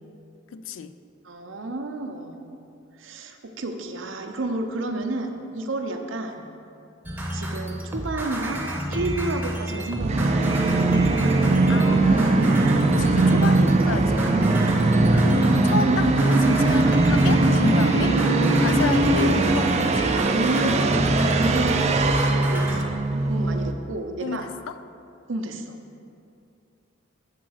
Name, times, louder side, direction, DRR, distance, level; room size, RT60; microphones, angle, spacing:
voice 1, 0.5-1.0 11.7-14.4 15.1-18.2 18.6-20.1 21.6-21.8 24.2-24.7, left 5 dB, 70° left, 11 dB, 0.3 m, -31 dB
voice 2, 1.2-2.6 3.0-6.4 7.3-10.3 20.3-24.5 25.3-25.7, right 2 dB, 70° right, 5 dB, 0.6 m, -31 dB
sound 1, 7.0-22.8, right 1 dB, 10° right, 0.7 m, -30 dB
Musical instrument, 10.0-23.7, right 2 dB, 35° right, 0.3 m, -20 dB
7.5 x 3.9 x 6.3 m, 2.5 s
head